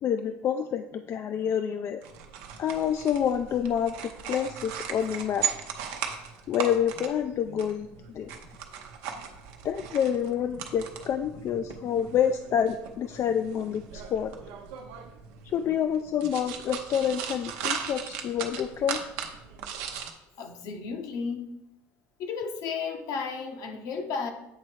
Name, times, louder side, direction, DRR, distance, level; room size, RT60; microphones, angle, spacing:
voice 1, 0.0-2.0 2.6-5.5 6.5-8.3 9.6-14.3 15.4-19.0, left 8 dB, 45° left, 8 dB, 0.3 m, -28 dB
sound 1, 2.0-20.1, right 7 dB, 80° right, 0.8 m, -38 dB
voice 2, 20.4-21.6 22.2-24.3, left 5 dB, 65° left, 5 dB, 0.9 m, -33 dB
8.2 x 3.1 x 4.5 m, 0.89 s
supercardioid pair, 90°, 7 cm